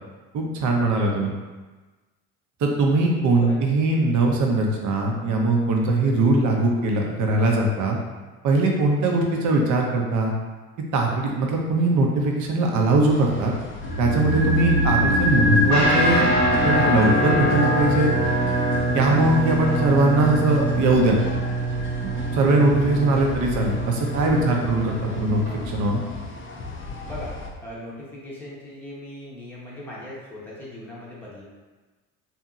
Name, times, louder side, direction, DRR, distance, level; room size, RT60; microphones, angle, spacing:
voice 1, 0.3-1.3 2.6-8.0 8.4-10.3 10.9-13.5 14.0-16.3 16.5-18.1 18.9-21.2 22.0-26.0, right 2 dB, 40° right, 0 dB, 0.7 m, -21 dB
voice 2, 0.9-1.2 3.3-3.6 4.2-4.4 9.0-9.3 14.7-15.0 24.3-24.7 27.0-27.3 27.6-31.4, left 1 dB, 5° left, -6 dB, 0.8 m, -39 dB
sound 1, 13.1-27.5, left 3 dB, 30° left, 0.5 m, -36 dB
sound 2, 13.8-24.1 24.3-24.4, equal, 80° left, 1.1 m, -25 dB
Guitar, 15.7-25.5, right 1 dB, 75° right, 1.1 m, -25 dB
2.7 x 2.7 x 2.3 m, 1.3 s
hypercardioid pair, 65°, 45 cm